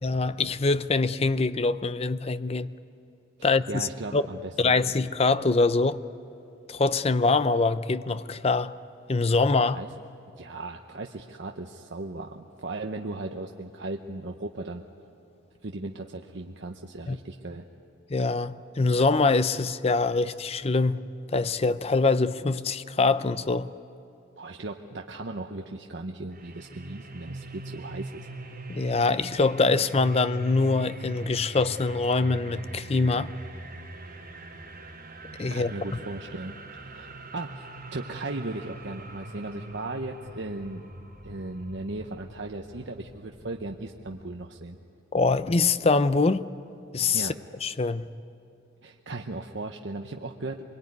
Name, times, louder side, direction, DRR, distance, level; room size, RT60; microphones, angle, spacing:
voice 1, 0.0-2.7 3.4-4.2 4.6-6.0 6.7-8.7 9.1-9.8 17.1-17.2 18.1-23.7 28.7-33.3 35.4-35.7 45.1-46.4 46.9-47.3 47.6-48.1, left 3 dB, 30° left, 0.5 m, -24 dB
voice 2, 3.4-4.7 9.7-9.9 10.4-14.8 15.6-17.6 24.4-28.3 35.5-36.5 36.9-37.7 37.9-40.8 41.2-44.8 47.1-47.3 48.8-50.6, right 2 dB, 65° right, 0.9 m, -37 dB
sound 1, 26.3-44.2, right 1 dB, 45° right, 4.5 m, -42 dB
25.0 x 22.5 x 9.6 m
head